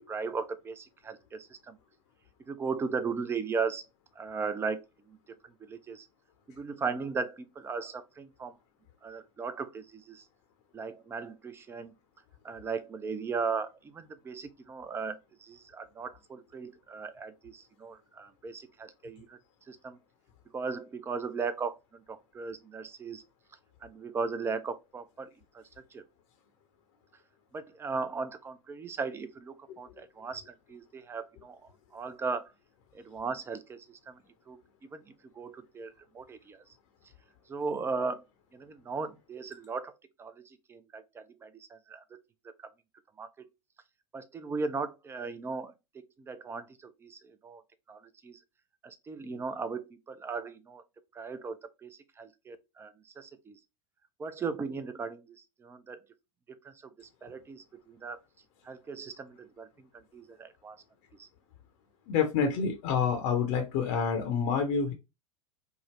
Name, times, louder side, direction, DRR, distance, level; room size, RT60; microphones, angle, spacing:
voice 1, 0.0-1.8 2.5-3.9 4.2-5.2 5.4-6.1 6.5-8.6 9.0-10.3 10.7-11.9 12.4-19.4 19.7-20.0 20.5-23.2 23.8-26.0 27.5-32.5 32.9-34.2 34.5-36.6 37.5-38.2 38.5-39.9 40.2-42.7 43.2-43.5 44.1-47.6 47.9-48.4 48.8-50.8 51.1-53.6 54.2-56.0 56.5-58.2 58.6-60.8 61.2-61.3, right 4 dB, 15° right, 0.4 m, -37 dB
voice 2, 62.1-64.9, left 6 dB, 50° left, 0.7 m, -28 dB
3.5 x 2.0 x 2.9 m
figure-of-eight pair, 85°, 18 cm